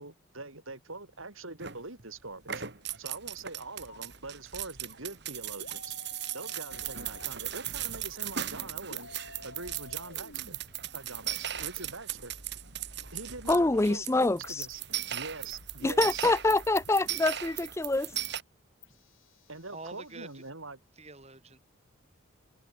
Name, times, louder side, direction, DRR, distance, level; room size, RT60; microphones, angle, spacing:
voice 1, 0.0-2.6 3.0-6.0 6.3-10.6 10.9-12.3 13.1-14.8 15.1-16.3 19.5-20.8, right 3 dB, 75° right, 5.2 m, -43 dB
sound 1, 1.6-2.1 2.4-18.4, right 11 dB, 55° right, 3.0 m, -38 dB
sound 2, 3.9-4.0 5.6-7.3 8.9-10.6 12.2-13.9 15.5-17.2 18.8-20.5, left 2 dB, 75° left, 7.5 m, -51 dB
voice 2, 13.5-14.7 15.8-18.1, left 2 dB, 15° left, 0.4 m, -26 dB
voice 3, 19.7-20.4 21.0-21.6, right 3 dB, 30° right, 6.9 m, -46 dB
head